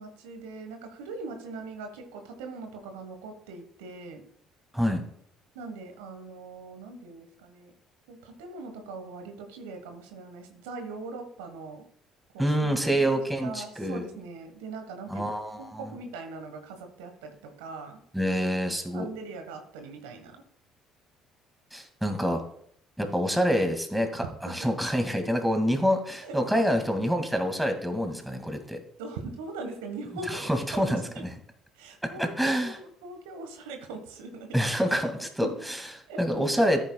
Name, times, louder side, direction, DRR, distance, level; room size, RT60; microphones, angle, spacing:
voice 1, 0.0-4.2 5.5-7.7 8.1-11.8 12.3-15.3 15.6-18.0 18.9-20.4 24.6-24.7 26.2-26.6 27.8-28.1 29.0-30.5 30.8-31.3 31.7-34.6 35.4-35.6 36.1-36.6, right 3 dB, 75° right, 5 dB, 1.3 m, -41 dB
voice 2, 12.4-14.0 15.1-15.9 18.1-19.1 21.7-22.4 23.0-28.8 30.3-31.3 32.2-32.8 34.5-35.8 36.2-36.8, equal, 5° right, 5 dB, 2.1 m, -27 dB
14.0 x 9.0 x 2.3 m, 0.70 s
hypercardioid pair, 55°, 0 cm